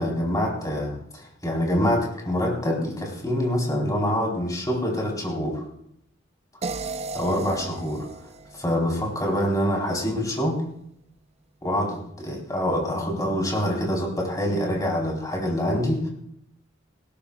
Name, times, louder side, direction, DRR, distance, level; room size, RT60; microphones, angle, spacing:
voice 1, 0.0-5.6 7.1-8.1 8.5-10.6 11.6-16.1, equal, 15° left, -2 dB, 4.2 m, -25 dB
sound 1, 6.6-9.7, right 3 dB, 30° right, 0.6 m, -36 dB
20.0 x 17.5 x 2.4 m, 0.73 s
head